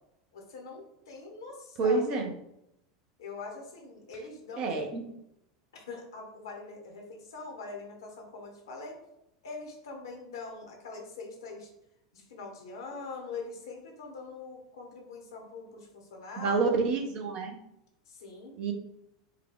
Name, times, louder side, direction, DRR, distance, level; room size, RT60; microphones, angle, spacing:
voice 1, 0.3-2.0 3.2-5.2 5.7-9.0 9.4-11.7 12.1-16.6 18.1-18.6, left 4 dB, 65° left, 1 dB, 1.2 m, -43 dB
voice 2, 1.8-2.3 4.6-5.0 16.4-17.6 18.6-18.7, right 4 dB, 40° right, 3 dB, 0.9 m, -28 dB
4.7 x 2.3 x 3.7 m, 0.82 s
figure-of-eight pair, 80°, 2 cm